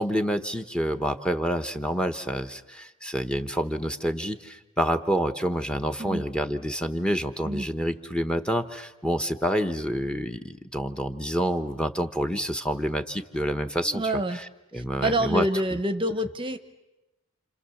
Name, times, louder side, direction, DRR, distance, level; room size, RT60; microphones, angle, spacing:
voice 1, 0.0-14.0 14.3-14.5 14.7-15.5, equal, 5° left, 8 dB, 1.0 m, -28 dB
voice 2, 13.8-14.4 14.7-16.6, right 1 dB, 25° right, 10 dB, 0.9 m, -27 dB
29.5 x 27.5 x 7.1 m, 1.0 s
head